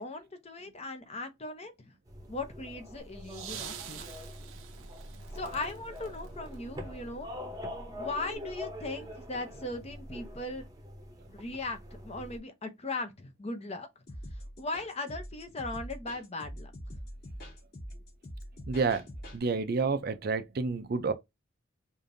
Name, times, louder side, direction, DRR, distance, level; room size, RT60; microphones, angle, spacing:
voice 1, 0.0-1.9 2.3-4.1 5.3-7.3 7.9-10.6 11.3-11.8 12.0-13.9 14.6-17.0, left 2 dB, 30° left, 0.7 m, -38 dB
sound 1, 2.1-12.4, left 1 dB, 20° right, 0.8 m, -44 dB
sound 2, 3.0-7.2 8.3-8.4, right 8 dB, 85° right, 0.8 m, -47 dB
sound 3, 14.1-19.4, equal, 50° left, 2.9 m, -43 dB
voice 2, 18.7-19.0 19.3-21.1, right 4 dB, 50° right, 0.5 m, -29 dB
5.0 x 2.6 x 2.6 m
head